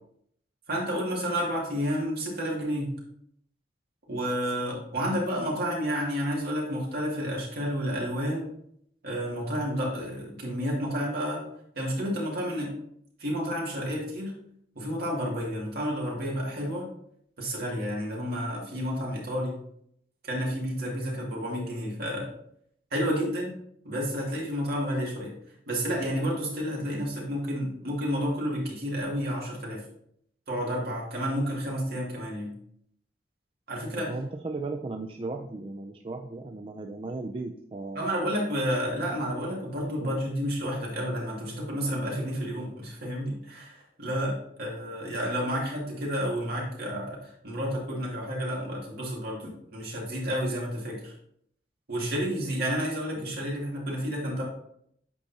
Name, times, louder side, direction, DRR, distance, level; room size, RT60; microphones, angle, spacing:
voice 1, 0.7-3.0 4.1-8.5 9.0-11.5 11.7-12.8 13.2-14.3 14.8-16.9 17.4-19.6 20.2-22.3 22.9-23.5 23.8-25.3 25.7-29.8 30.5-32.5 33.7-34.1 38.0-51.1 51.9-54.4, equal, 60° right, -3 dB, 2.3 m, -30 dB
voice 2, 34.1-38.1 40.0-40.1 53.2-53.3, right 3 dB, 30° right, 3 dB, 0.4 m, -36 dB
8.2 x 4.9 x 2.8 m, 0.69 s
head